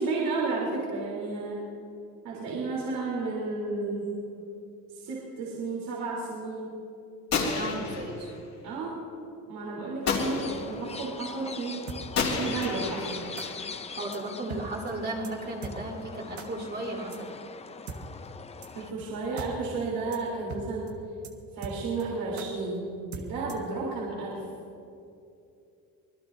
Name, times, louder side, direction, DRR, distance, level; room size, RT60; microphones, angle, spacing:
voice 1, 0.0-1.7 2.2-4.1 4.9-6.8 8.6-9.0 9.5-11.9 12.4-13.3 18.7-20.9 21.5-24.4, right 3 dB, 75° right, -4 dB, 3.6 m, -32 dB
Gunshot gunfire, 7.3-8.4 10.1-10.9 12.2-13.9, left 4 dB, 50° left, 3.3 m, -31 dB
voice 2, 7.5-8.3 14.0-17.3, right 2 dB, 25° right, -1 dB, 3.0 m, -35 dB
sound 1, 10.0-18.9, left 5 dB, 20° left, 0.5 m, -42 dB
sound 2, 11.9-12.0 12.6-12.7 13.4-13.5 14.1-14.2 14.5-14.6 14.9-15.0 15.2-15.3 15.6-15.8 16.4-16.5 17.1-17.2 17.9-18.0 18.6-18.7 19.0-19.1 19.4-19.5 19.8-19.9 20.1-20.2 20.5-20.6 20.9-21.0 21.2-21.3 21.6-22.0 22.4-22.5 23.1-23.7, right 5 dB, 55° right, 1.6 m, -40 dB
25.0 x 20.5 x 2.7 m, 2.7 s
cardioid pair, 140°, 35 cm